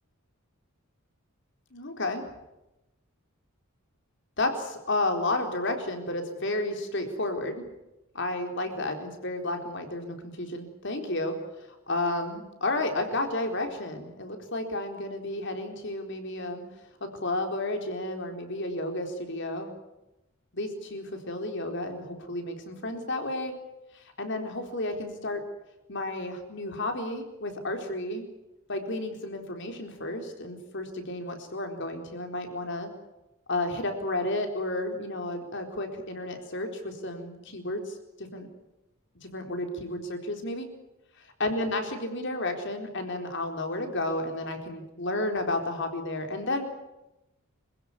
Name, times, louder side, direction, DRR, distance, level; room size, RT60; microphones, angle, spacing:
voice 1, 1.7-2.2 4.4-7.7 8.1-11.4 11.9-16.7 17.0-19.7 20.5-23.5 23.9-25.4 25.9-28.2 28.7-32.9 33.5-38.5 39.2-40.7 41.4-46.7, left 2 dB, 55° left, 5 dB, 4.1 m, -32 dB
27.0 x 16.0 x 9.7 m, 0.95 s
head